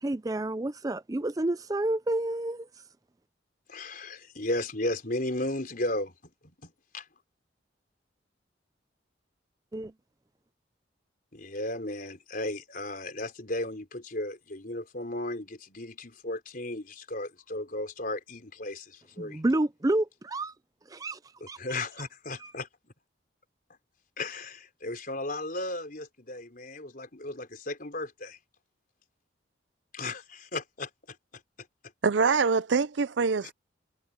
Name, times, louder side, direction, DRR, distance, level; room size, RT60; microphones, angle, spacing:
voice 1, 0.0-2.7 9.7-9.9 19.2-20.5 20.9-21.2 22.4-22.5, right 1 dB, 20° right, 0.5 m, -29 dB
voice 2, 3.7-6.1 6.4-7.0 11.3-19.4 21.4-22.7 24.2-28.4 29.9-31.2, left 1 dB, 50° left, 4.5 m, -35 dB
voice 3, 32.0-33.5, right 5 dB, 75° right, 0.5 m, -24 dB
head